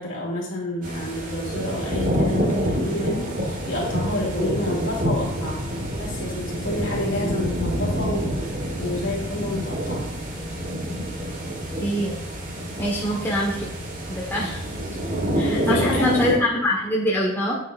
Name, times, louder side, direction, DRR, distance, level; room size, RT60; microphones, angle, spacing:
voice 1, 0.0-5.6 6.0-10.1 15.5-16.5, left 1 dB, 65° left, -3 dB, 2.7 m, -29 dB
sound 1, 0.8-16.3, equal, 40° right, 1.6 m, -27 dB
voice 2, 11.8-12.2 12.8-13.6 14.1-14.6 15.3-17.5, left 1 dB, 10° left, -4 dB, 1.3 m, -24 dB
9.2 x 7.5 x 2.6 m, 0.78 s
head